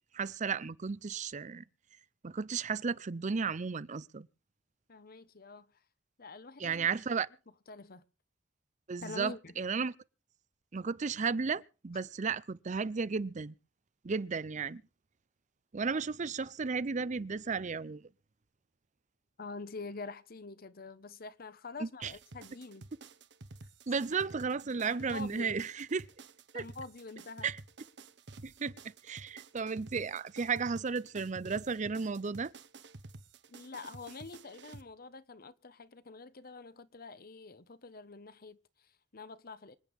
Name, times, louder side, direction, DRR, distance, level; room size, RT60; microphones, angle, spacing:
voice 1, 0.1-1.6 2.2-4.3 6.6-7.3 8.9-9.9 10.7-13.5 14.0-14.8 15.7-18.0 21.8-22.1 23.9-26.0 26.5-26.6 27.4-27.6 28.4-28.7 29.0-32.5, right 5 dB, 40° right, 0.6 m, -34 dB
voice 2, 4.9-5.7 6.2-6.9 7.7-8.0 9.0-9.5 19.4-22.9 24.8-25.5 26.5-27.5 33.5-39.8, left 3 dB, 50° left, 1.0 m, -46 dB
sound 1, 22.0-34.8, right 3 dB, 65° right, 1.2 m, -51 dB
26.0 x 9.1 x 3.6 m
head